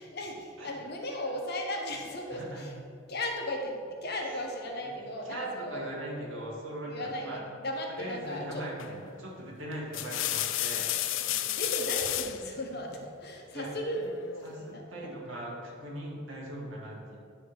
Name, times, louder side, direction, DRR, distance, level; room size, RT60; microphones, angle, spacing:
voice 1, 0.0-2.7 3.1-5.9 6.9-8.6 11.2-14.1 14.5-15.1, left 1 dB, 55° left, 1 dB, 1.2 m, -36 dB
voice 2, 2.3-2.7 4.2-4.3 4.8-4.9 5.2-7.4 7.9-10.9 13.5-13.7 14.4-17.2, right 1 dB, 75° right, -4 dB, 2.2 m, -40 dB
sound 1, 8.8-9.1 9.7-12.4 13.9-14.5, left 13 dB, 70° left, 0.4 m, -32 dB
10.0 x 3.8 x 6.4 m, 2.3 s
head